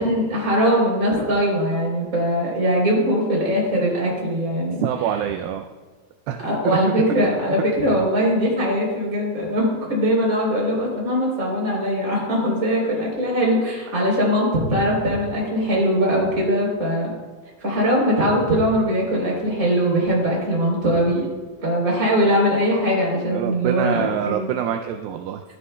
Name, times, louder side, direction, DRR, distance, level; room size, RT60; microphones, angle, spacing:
voice 1, 0.0-4.8 6.4-17.1 17.6-21.3 21.6-24.5, equal, 20° right, -3 dB, 3.5 m, -21 dB
voice 2, 4.8-5.7 6.3-6.4 6.6-6.8 23.3-25.4, right 9 dB, 85° right, 5 dB, 2.2 m, -25 dB
13.5 x 12.5 x 2.2 m, 1.4 s
omnidirectional pair, 4.7 m